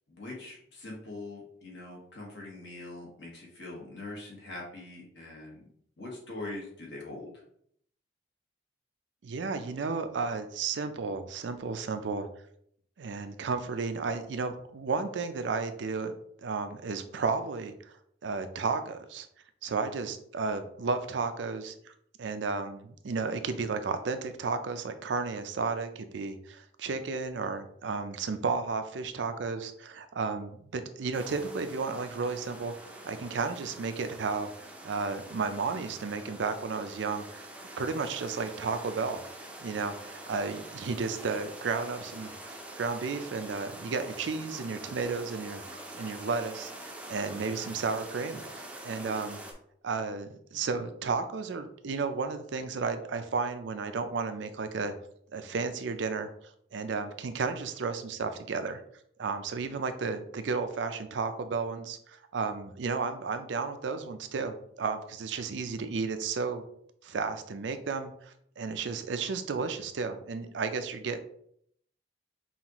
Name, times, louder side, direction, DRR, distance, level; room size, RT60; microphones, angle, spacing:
voice 1, 0.1-5.6 6.0-7.4, left 2 dB, 70° left, -2 dB, 1.5 m, -42 dB
voice 2, 9.2-12.3 13.0-16.1 16.4-17.7 18.2-19.3 19.6-21.9 22.2-32.7 33.0-37.5 37.8-39.2 39.6-45.6 45.9-49.4 49.8-54.9 55.3-56.3 56.7-58.8 59.2-66.6 67.0-71.2, right 4 dB, 75° right, 9 dB, 0.4 m, -33 dB
sound 1, 31.1-49.5, right 1 dB, 5° right, 0.5 m, -45 dB
5.5 x 2.5 x 2.9 m, 0.68 s
head